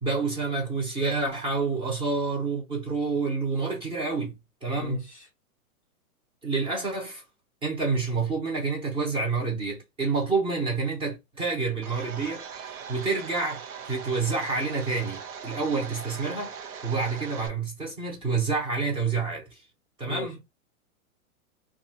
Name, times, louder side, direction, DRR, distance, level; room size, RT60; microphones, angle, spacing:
voice 1, 0.0-5.0 6.4-7.2 7.6-13.6 13.9-16.5 16.8-19.6 20.0-20.4, right 4 dB, 10° right, 0.7 m, -28 dB
voice 2, 4.7-5.3 20.1-20.4, left 8 dB, 25° left, 0.3 m, -38 dB
Domestic sounds home sounds, 11.8-17.5, right 7 dB, 80° right, 0.9 m, -40 dB
2.8 x 2.4 x 2.8 m
hypercardioid pair, 145°, 43 cm